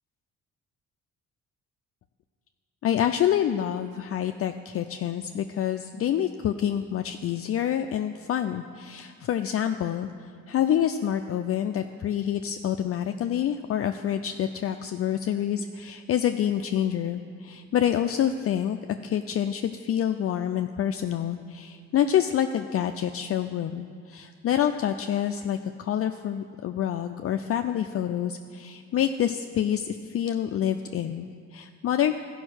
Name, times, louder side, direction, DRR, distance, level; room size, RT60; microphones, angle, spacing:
voice 1, 2.8-10.1 10.5-18.8 19.0-32.2, left 10 dB, 50° left, 6 dB, 0.4 m, -27 dB
14.0 x 5.4 x 6.3 m, 2.2 s
cardioid pair, 90°, 30 cm